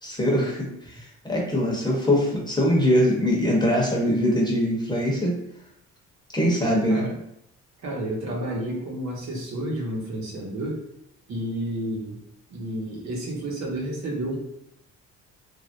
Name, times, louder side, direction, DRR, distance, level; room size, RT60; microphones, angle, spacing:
voice 1, 0.0-5.4 6.3-7.1, equal, 15° left, -3 dB, 1.0 m, -22 dB
voice 2, 7.8-10.8 11.3-12.2 12.5-14.4, right 1 dB, 60° right, -3 dB, 1.1 m, -30 dB
3.1 x 2.6 x 2.6 m, 0.78 s
cardioid pair, 90°, 30 cm